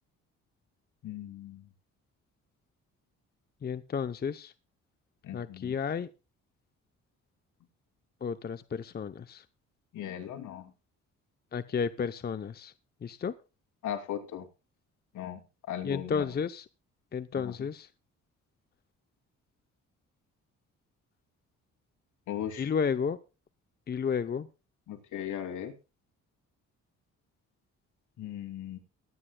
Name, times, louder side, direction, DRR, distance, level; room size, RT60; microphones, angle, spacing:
voice 1, 1.0-1.7 5.2-5.8 9.9-10.7 13.8-14.5 15.1-15.4 15.7-16.2 17.4-17.5 22.3-22.7 24.9-25.7 28.2-28.8, left 10 dB, 75° left, 4 dB, 2.7 m, -38 dB
voice 2, 3.6-4.5 5.3-6.1 8.2-9.5 11.5-12.7 13.0-13.3 15.8-16.7 17.1-17.9 22.6-23.2 23.9-24.5, left 6 dB, 30° left, 11 dB, 0.7 m, -32 dB
23.0 x 9.9 x 2.2 m, 0.30 s
cardioid pair, 90°, 30 cm